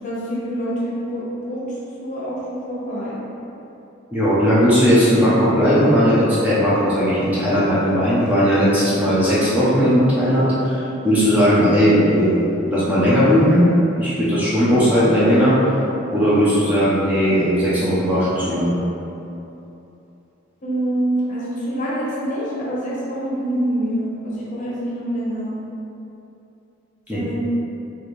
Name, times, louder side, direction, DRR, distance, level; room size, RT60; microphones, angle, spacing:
voice 1, 0.0-3.2 20.6-25.6 27.1-27.3, right 1 dB, 40° left, -8 dB, 1.0 m, -26 dB
voice 2, 4.1-12.4 12.6-13.6 14.0-15.6 16.1-18.7 27.1-27.2, equal, 10° right, -11 dB, 0.6 m, -17 dB
4.2 x 2.8 x 3.1 m, 2.9 s
head